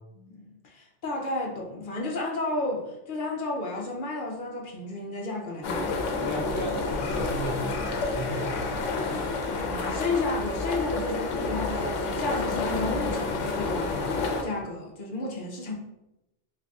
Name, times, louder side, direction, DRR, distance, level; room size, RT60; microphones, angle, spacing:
voice 1, 0.1-5.9 9.5-13.9 14.4-15.7, left 2 dB, 50° left, -1 dB, 0.8 m, -32 dB
sound 1, 5.6-14.4, left 3 dB, 85° left, 0.9 m, -29 dB
voice 2, 6.2-8.9, right 1 dB, 50° right, -4 dB, 0.3 m, -35 dB
3.4 x 2.6 x 3.4 m, 0.92 s
omnidirectional pair, 1.2 m